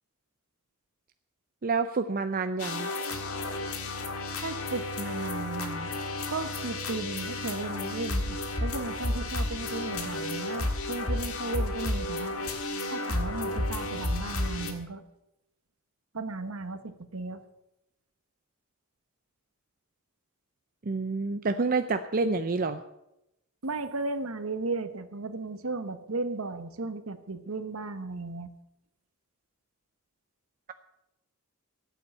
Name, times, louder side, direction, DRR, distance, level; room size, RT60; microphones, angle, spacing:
voice 1, 1.6-2.9 20.8-22.8, right 4 dB, 40° right, 8 dB, 0.5 m, -28 dB
sound 1, 2.6-14.7, left 2 dB, 80° left, 1.8 m, -32 dB
voice 2, 4.4-5.9 6.3-12.3 12.9-15.0 16.1-17.4 23.6-28.5, right 3 dB, 70° right, 10 dB, 1.2 m, -35 dB
14.0 x 8.2 x 8.1 m, 0.87 s
head